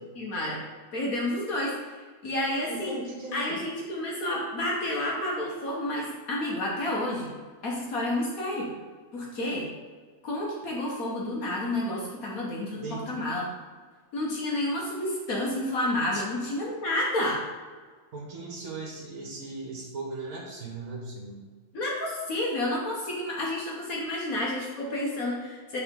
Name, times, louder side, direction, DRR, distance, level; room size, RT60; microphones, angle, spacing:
voice 1, 0.1-0.6 0.9-2.0 2.2-3.0 3.3-7.3 7.6-8.7 9.1-9.7 10.2-13.4 14.1-17.4 21.7-25.8, left 1 dB, 65° left, -3 dB, 1.6 m, -30 dB
voice 2, 2.6-3.6 12.7-13.2 16.1-16.2 18.1-21.4, right 3 dB, 60° right, -2 dB, 1.6 m, -38 dB
9.3 x 3.9 x 3.7 m, 1.5 s
omnidirectional pair, 1.7 m